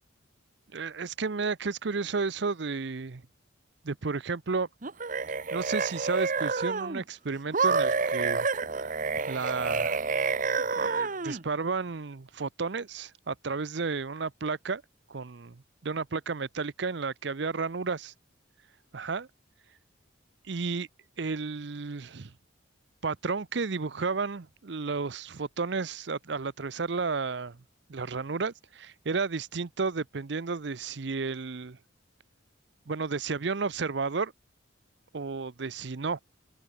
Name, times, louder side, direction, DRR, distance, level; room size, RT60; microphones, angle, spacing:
voice 1, 0.7-3.2 3.8-4.7 5.3-8.5 9.3-10.0 10.6-14.8 15.1-18.1 18.9-19.3 20.5-20.9 21.2-22.3 23.0-27.6 27.9-31.8 32.9-34.3 35.1-36.2, right 4 dB, 60° right, 0.7 m, -32 dB
sound 1, 4.8-7.0 7.5-11.4, right 4 dB, 40° right, 1.1 m, -28 dB
open air
head